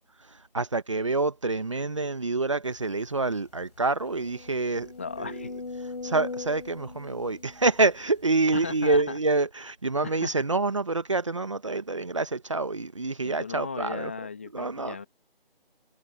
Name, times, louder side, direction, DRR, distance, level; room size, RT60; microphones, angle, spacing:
voice 1, 0.0-4.9 5.2-5.5 5.8-14.1 14.5-15.0, right 3 dB, 30° right, 1.4 m, -27 dB
sound 1, 2.9-3.0 3.4-3.5 4.0-8.3 8.9-9.0, left 3 dB, 45° left, 5.6 m, -40 dB
voice 2, 5.0-5.5 8.5-9.2 10.0-10.3 13.2-15.1, left 5 dB, 15° left, 1.4 m, -36 dB
figure-of-eight pair, 170°, 30 cm